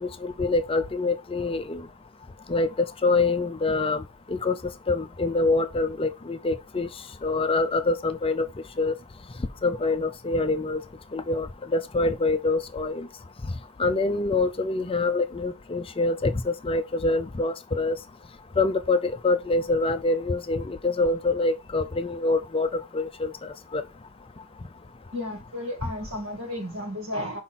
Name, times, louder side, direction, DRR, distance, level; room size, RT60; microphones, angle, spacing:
voice 1, 0.0-1.9 2.5-4.0 4.3-4.6 4.9-6.9 7.2-8.5 8.8-8.9 9.6-10.8 11.1-13.1 13.4-13.5 13.8-18.0 18.6-23.8, left 3 dB, 25° left, 0.5 m, -25 dB
voice 2, 25.1-27.4, left 1 dB, 60° right, 2.1 m, -33 dB
5.8 x 5.0 x 4.2 m
head